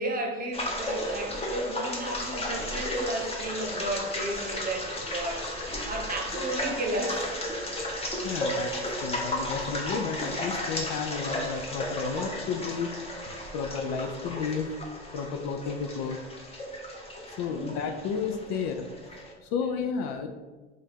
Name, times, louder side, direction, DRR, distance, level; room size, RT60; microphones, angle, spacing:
voice 1, 0.0-7.2 17.5-17.8, right 1 dB, 25° right, 1 dB, 0.9 m, -33 dB
sound 1, 0.5-19.3, left 1 dB, 20° left, 0.9 m, -34 dB
voice 2, 8.2-12.9 13.5-14.7 15.1-16.2 17.4-18.9 19.4-20.3, left 6 dB, 50° left, 5 dB, 0.5 m, -32 dB
3.2 x 2.5 x 4.2 m, 1.2 s
hypercardioid pair, 75°, 33 cm